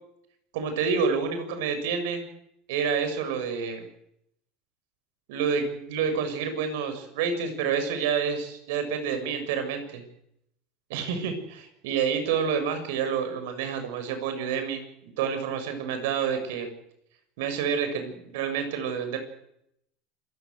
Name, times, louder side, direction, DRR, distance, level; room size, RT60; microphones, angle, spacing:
voice 1, 0.5-2.2 2.7-3.9 5.3-10.0 10.9-16.7 17.4-19.2, right 6 dB, 85° right, 8 dB, 7.3 m, -28 dB
27.5 x 16.5 x 8.1 m, 0.76 s
supercardioid pair, 130°, 0 cm